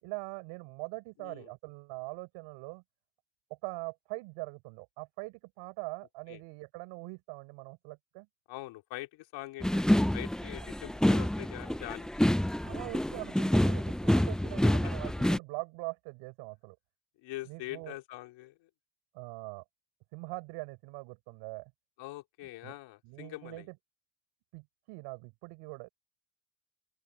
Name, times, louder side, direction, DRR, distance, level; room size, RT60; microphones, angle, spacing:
voice 1, 0.0-2.8 3.6-8.3 12.6-16.8 17.5-18.0 19.1-19.6 20.1-21.7 22.6-22.7 23.0-23.6 24.5-25.9, right 26 dB, 85° right, 4.8 m, -42 dB
voice 2, 1.2-1.5 6.3-6.4 8.5-12.1 17.2-18.7 22.0-23.7, left 17 dB, 75° left, 3.9 m, -43 dB
sound 1, 9.6-15.4, left 1 dB, ahead, 0.4 m, -27 dB
open air
supercardioid pair, 75°, 45 cm